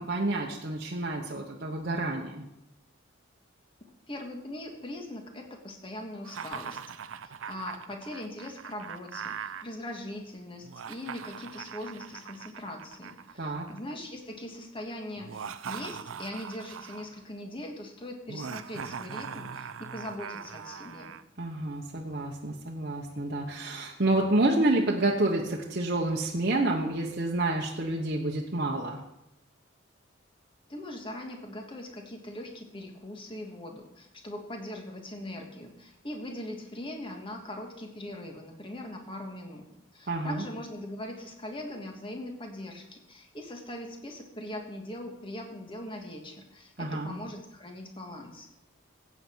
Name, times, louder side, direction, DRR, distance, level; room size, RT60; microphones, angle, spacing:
voice 1, 0.0-2.4 13.4-13.7 21.4-29.0 40.1-40.4 46.8-47.2, right 2 dB, 50° right, -1 dB, 1.0 m, -29 dB
voice 2, 4.1-6.8 7.2-21.1 30.7-39.7 39.9-48.5, left 1 dB, 25° left, 3 dB, 1.7 m, -41 dB
Laughter, 6.2-9.6 10.6-13.9 15.2-17.2 18.3-21.2, right 7 dB, 90° right, 0.6 m, -41 dB
15.0 x 8.4 x 4.6 m, 0.89 s
head